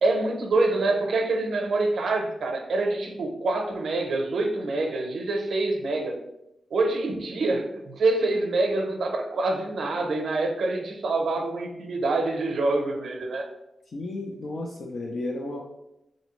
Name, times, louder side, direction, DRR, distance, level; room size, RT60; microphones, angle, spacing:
voice 1, 0.0-6.1 6.7-13.5, right 2 dB, 70° right, 3 dB, 0.7 m, -26 dB
voice 2, 13.9-15.6, left 2 dB, 50° left, -2 dB, 0.5 m, -33 dB
4.1 x 2.7 x 3.0 m, 0.86 s
wide cardioid pair, 155°, 0 cm